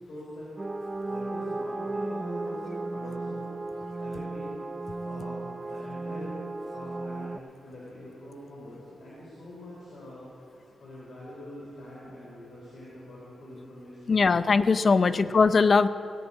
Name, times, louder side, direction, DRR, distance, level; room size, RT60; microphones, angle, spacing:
voice 1, 0.1-0.6 1.1-3.5 4.0-4.6 5.0-6.3 6.7-10.5 10.8-14.2 15.0-15.2, left 1 dB, 70° left, -7 dB, 3.8 m, -44 dB
sound 1, 0.6-7.4, right 2 dB, 25° right, 0.5 m, -35 dB
voice 2, 14.1-15.9, left 4 dB, 50° left, 14 dB, 0.5 m, -20 dB
17.5 x 6.1 x 8.6 m, 2.6 s
cardioid pair, 65°, 0 cm